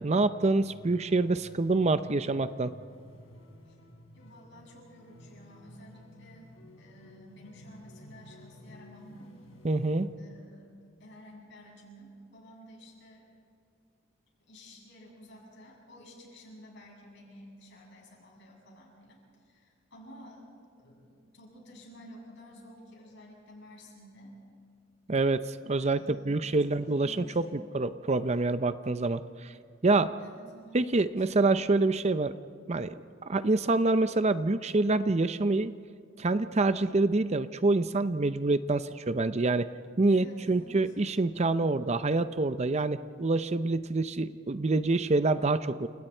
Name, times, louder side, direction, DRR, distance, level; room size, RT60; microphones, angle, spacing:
voice 1, 0.0-2.7 9.6-10.1 25.1-29.5 29.8-30.1 30.7-32.3 32.7-33.0 33.3-35.7 36.2-39.7 40.0-45.9, right 3 dB, 35° right, 12 dB, 0.6 m, -26 dB
sound 1, 0.6-10.0, equal, 85° left, 4.7 m, -53 dB
voice 2, 4.1-6.5 6.8-9.3 10.2-10.7 11.0-13.3 14.4-20.5 20.8-24.3 25.8-27.7 30.2-30.8 31.2-31.3 40.1-40.9, equal, 60° left, -2 dB, 7.6 m, -52 dB
30.0 x 28.0 x 4.5 m, 2.3 s
head